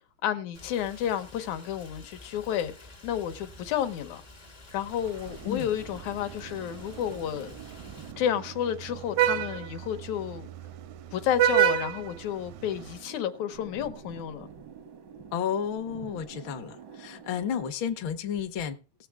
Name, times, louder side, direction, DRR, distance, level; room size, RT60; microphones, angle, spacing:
voice 1, 0.2-4.2 4.7-7.5 8.2-10.5 11.1-14.5, left 10 dB, 75° left, 2.2 m, -31 dB
Rain, 0.5-8.1, left 2 dB, 40° left, 0.6 m, -50 dB
Vehicle horn car horn honking, 4.9-13.0, right 11 dB, 80° right, 2.0 m, -31 dB
sound 1, 5.3-17.7, right 7 dB, 65° right, 1.1 m, -48 dB
voice 2, 15.3-18.8, left 8 dB, 60° left, 1.4 m, -32 dB
19.0 x 7.0 x 3.5 m
omnidirectional pair, 3.4 m